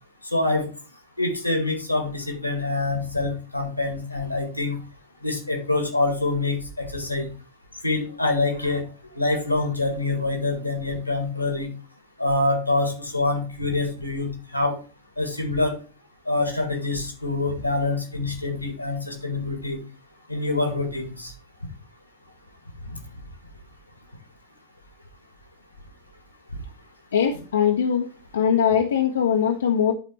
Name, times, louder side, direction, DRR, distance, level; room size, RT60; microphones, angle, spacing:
voice 1, 0.3-0.7 1.2-4.8 5.2-7.3 7.8-8.8 9.2-11.7 12.2-14.3 14.5-14.8 15.2-15.8 16.3-19.8 20.3-21.3, left 2 dB, 85° left, 4 dB, 1.9 m, -25 dB
voice 2, 27.1-28.1 28.3-29.9, left 8 dB, 65° left, 3 dB, 0.9 m, -21 dB
10.0 x 4.3 x 4.3 m, 0.36 s
figure-of-eight pair, 90°, 0 cm